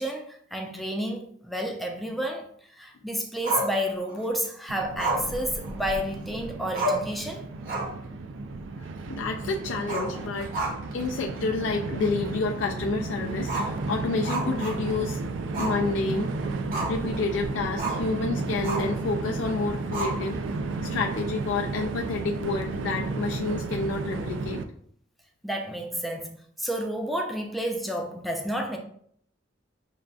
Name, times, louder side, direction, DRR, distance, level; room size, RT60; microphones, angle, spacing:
voice 1, 0.0-2.5 2.8-7.4 25.4-26.3 26.6-28.8, equal, ahead, 2 dB, 0.4 m, -30 dB
Growling, 3.4-4.3 5.0-6.2 6.5-6.6 6.7-7.2 7.6-8.0 8.4-8.5 9.8-11.0 11.4-11.5 12.0-12.1 13.4-15.1 15.5-15.8 16.2-17.1 17.8-18.1 18.6-19.0 19.9-20.5, right 2 dB, 50° right, 0.9 m, -31 dB
Train, 4.7-24.6, right 3 dB, 80° right, 0.4 m, -33 dB
voice 2, 9.1-10.5 10.9-15.2 15.6-16.3 16.9-20.4 20.9-24.6, left 3 dB, 80° left, 1 dB, 0.4 m, -29 dB
6.5 x 2.5 x 2.2 m, 0.64 s
head